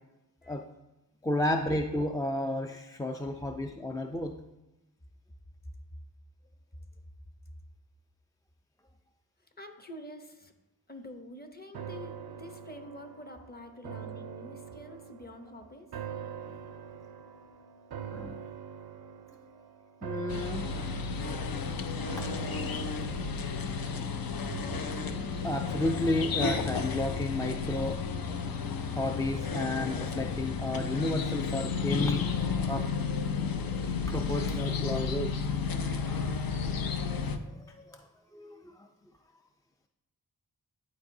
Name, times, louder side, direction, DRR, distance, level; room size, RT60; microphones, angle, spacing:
voice 1, 1.2-4.3 18.1-18.4 20.0-20.7 22.2-22.3 25.4-28.0 28.8-32.3 32.7-32.9 34.1-35.3 35.9-36.4 37.9-38.0 38.3-38.6, left 1 dB, 10° left, 3 dB, 0.3 m, -32 dB
voice 2, 9.6-10.5 10.9-15.9, left 1 dB, 25° left, 6 dB, 0.8 m, -47 dB
sound 1, 11.7-27.0 27.4-27.5, right 8 dB, 85° right, 0.5 m, -44 dB
sound 2, 20.3-37.4, left 5 dB, 70° left, 0.6 m, -32 dB
11.0 x 3.9 x 2.7 m, 0.98 s
cardioid pair, 50°, 37 cm